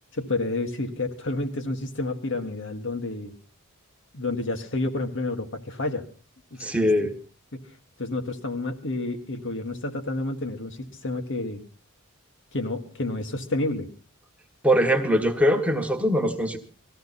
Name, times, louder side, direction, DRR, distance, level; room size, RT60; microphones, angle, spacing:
voice 1, 0.1-3.3 4.1-6.0 6.5-7.1 7.5-7.6 8.0-11.6 12.5-13.9, left 2 dB, 60° left, 5 dB, 1.8 m, -30 dB
voice 2, 6.6-7.1 14.6-16.6, equal, 5° right, 3 dB, 1.4 m, -22 dB
19.5 x 14.5 x 4.2 m, 0.36 s
head